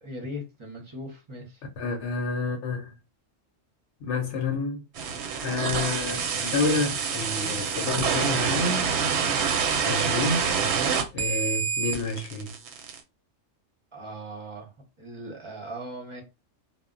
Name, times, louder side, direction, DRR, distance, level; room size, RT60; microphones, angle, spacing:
voice 1, 0.0-1.6 13.9-16.2, equal, 30° right, 0.6 m, -39 dB
voice 2, 1.8-2.9 4.0-4.8 5.4-8.9 9.8-10.5 11.1-12.5, left 3 dB, 65° left, 0.9 m, -29 dB
sound 1, 5.0-13.0, right 6 dB, 65° right, 0.8 m, -27 dB
2.2 x 2.0 x 3.6 m
omnidirectional pair, 1.3 m